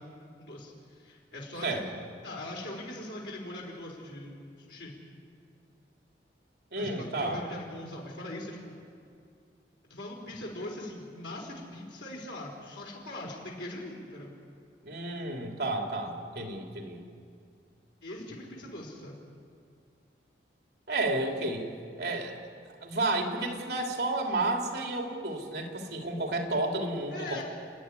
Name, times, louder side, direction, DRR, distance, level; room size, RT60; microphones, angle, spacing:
voice 1, 0.0-1.9 2.2-4.4 4.7-4.9 6.8-8.7 9.9-14.3 18.0-19.2 27.1-27.4, left 1 dB, 90° left, -2 dB, 4.1 m, -41 dB
voice 2, 6.7-7.4 14.8-17.0 20.9-21.6 22.0-22.4 22.8-27.4, right 2 dB, 65° right, 2 dB, 3.1 m, -31 dB
29.5 x 11.0 x 9.7 m, 2.3 s
head